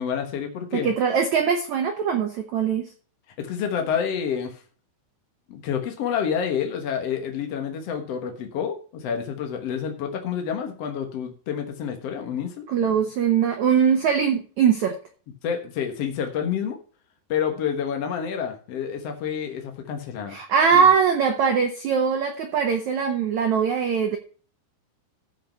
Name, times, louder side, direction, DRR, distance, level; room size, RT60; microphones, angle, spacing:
voice 1, 0.0-0.9 3.4-4.6 5.5-12.6 15.4-16.8 17.3-20.4 20.7-20.9, left 7 dB, 75° left, 4 dB, 1.4 m, -28 dB
voice 2, 0.7-2.9 12.7-15.0 20.3-24.2, right 7 dB, 80° right, 5 dB, 1.6 m, -21 dB
14.0 x 5.3 x 5.7 m, 0.40 s
omnidirectional pair, 5.0 m